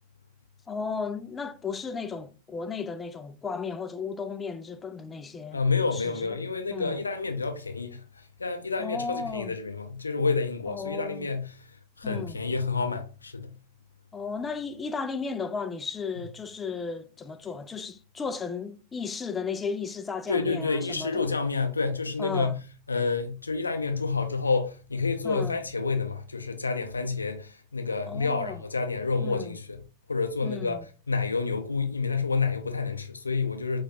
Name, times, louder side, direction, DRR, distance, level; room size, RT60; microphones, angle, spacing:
voice 1, 0.7-6.4 6.7-7.0 8.8-9.5 10.7-11.3 12.0-12.4 14.1-21.3 22.2-22.6 25.2-25.6 28.1-28.6 29.2-29.6 30.4-30.9, left 5 dB, 15° left, 0.3 m, -34 dB
voice 2, 5.5-11.7 12.0-13.5 20.3-22.6 22.9-29.8 30.1-30.8 31.1-33.8, left 4 dB, 80° left, 0.5 m, -29 dB
4.1 x 2.3 x 2.7 m
figure-of-eight pair, 90°, 0 cm